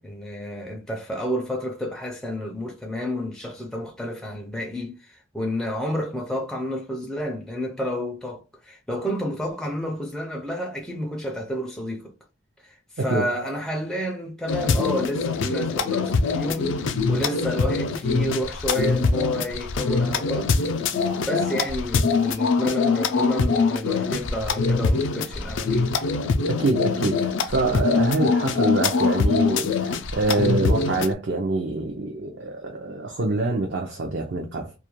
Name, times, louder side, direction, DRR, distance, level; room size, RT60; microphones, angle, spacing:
voice 1, 0.0-12.1 12.6-20.5 21.2-25.9, left 1 dB, 5° left, 0.4 m, -30 dB
voice 2, 13.0-13.3 26.5-34.7, right 2 dB, 60° right, 0.5 m, -25 dB
sound 1, 14.5-31.1, left 4 dB, 75° left, 0.3 m, -23 dB
2.3 x 2.1 x 3.0 m
head